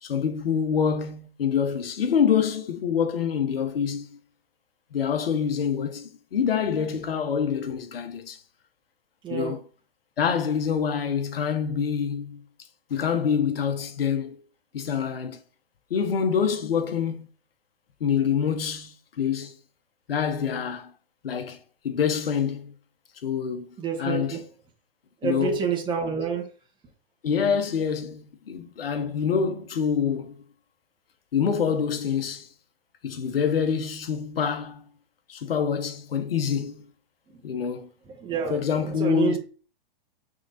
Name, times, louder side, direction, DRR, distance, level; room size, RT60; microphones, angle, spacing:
voice 1, 0.0-4.2 4.9-8.4 9.3-9.6 10.2-12.4 12.9-14.4 14.7-15.4 15.9-17.3 18.0-19.5 20.1-20.9 21.2-21.6 21.8-22.7 23.2-23.7 24.0-24.4 25.2-25.8 27.2-30.4 31.3-32.5 33.0-34.9 35.3-36.9 37.4-37.9 38.5-39.4, left 7 dB, 75° left, 1.2 m, -26 dB
voice 2, 9.2-9.5 23.8-24.4 25.2-26.5 37.3-37.4 38.1-39.4, right 6 dB, 15° right, 1.6 m, -28 dB
6.3 x 3.8 x 4.2 m
hypercardioid pair, 125°, 29 cm